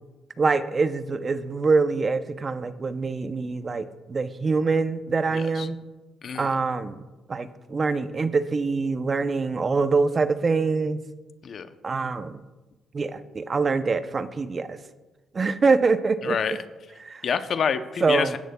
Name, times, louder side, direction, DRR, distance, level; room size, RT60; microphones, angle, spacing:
voice 1, 0.4-5.8 6.3-7.0 7.3-11.0 11.8-12.4 12.9-14.8 15.3-16.6 17.0-17.2 18.0-18.3, right 4 dB, 35° right, 12 dB, 0.6 m, -24 dB
voice 2, 5.3-5.7 6.2-6.5 11.4-11.7 16.2-16.6 17.2-18.4, left 6 dB, 55° left, 11 dB, 0.6 m, -27 dB
15.5 x 10.0 x 2.3 m, 1.2 s
cardioid pair, 90°, 0 cm